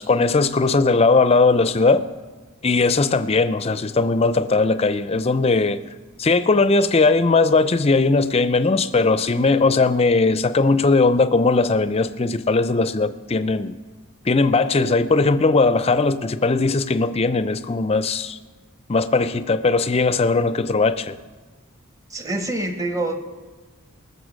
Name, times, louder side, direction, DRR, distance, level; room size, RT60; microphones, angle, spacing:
voice 1, 0.0-2.1 2.6-5.8 6.2-13.8 14.2-18.4 18.9-21.1, left 3 dB, 30° left, 0.5 m, -19 dB
voice 2, 22.1-23.2, right 2 dB, 15° right, 1.0 m, -26 dB
20.0 x 6.8 x 6.3 m
head